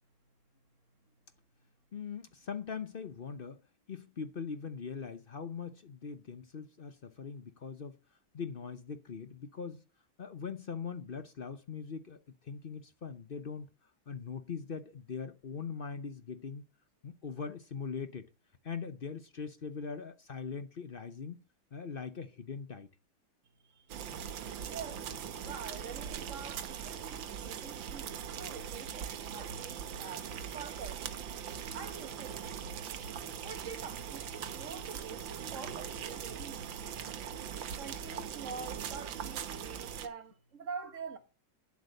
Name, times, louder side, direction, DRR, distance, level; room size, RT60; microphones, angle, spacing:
voice 1, 1.9-3.6 3.9-8.0 8.3-9.8 10.2-13.7 14.1-16.6 17.0-18.3 18.6-21.4 21.7-22.9, left 6 dB, 55° left, 0.6 m, -41 dB
voice 2, 23.6-24.4 24.6-25.1 25.4-31.2 31.7-37.2 37.8-41.2, right 6 dB, 45° right, 1.6 m, -46 dB
sound 1, 23.9-40.1, right 8 dB, 80° right, 1.8 m, -41 dB
11.0 x 8.0 x 6.5 m
omnidirectional pair, 2.1 m